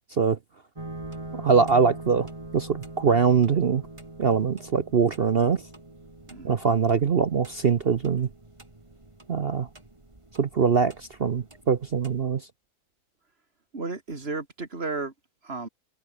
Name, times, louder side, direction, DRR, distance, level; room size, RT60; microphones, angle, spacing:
sound 1, 0.8-12.2, right 2 dB, 15° right, 2.4 m, -44 dB
voice 1, 1.4-2.3 2.5-3.8 4.2-5.6 6.4-8.3 9.3-9.7 10.4-12.4, right 6 dB, 60° right, 0.6 m, -22 dB
voice 2, 13.7-15.1 15.4-15.7, right 3 dB, 30° right, 3.2 m, -33 dB
omnidirectional pair, 2.1 m